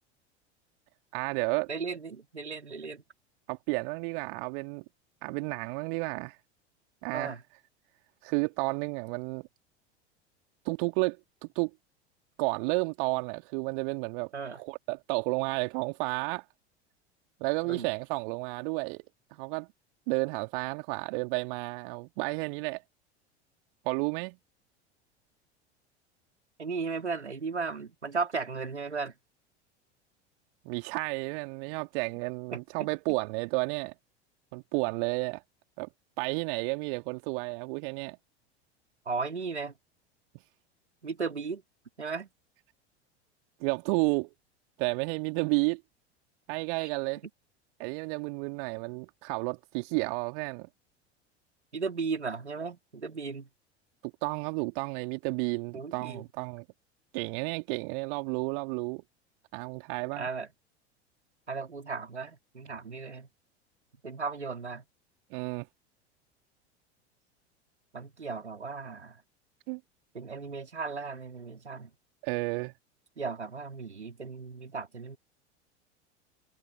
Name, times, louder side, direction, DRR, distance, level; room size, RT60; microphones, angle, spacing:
voice 1, 1.1-1.7 3.5-4.8 5.2-6.4 7.0-7.3 8.2-9.4 10.6-11.2 11.4-11.7 12.4-16.4 17.4-19.0 19.3-19.7 20.1-22.8 23.8-24.4 30.6-33.9 34.5-35.4 35.8-35.9 36.2-38.2 43.6-44.3 44.8-45.8 46.5-47.2 47.8-50.7 54.0-56.6 57.1-59.0 59.5-60.3 65.3-65.7 69.7-69.8 72.2-72.7, right 32 dB, 50° right, 2.5 m, -31 dB
voice 2, 1.7-3.0 7.1-7.4 14.3-14.6 17.6-17.9 26.6-29.1 32.5-32.9 39.1-39.8 41.0-41.6 42.0-42.3 46.8-46.9 51.7-53.5 55.7-56.2 60.2-60.5 61.5-63.3 64.0-64.8 67.9-69.2 70.1-71.9 73.2-75.2, right 4 dB, 80° right, 4.2 m, -36 dB
figure-of-eight pair, 80°, 33 cm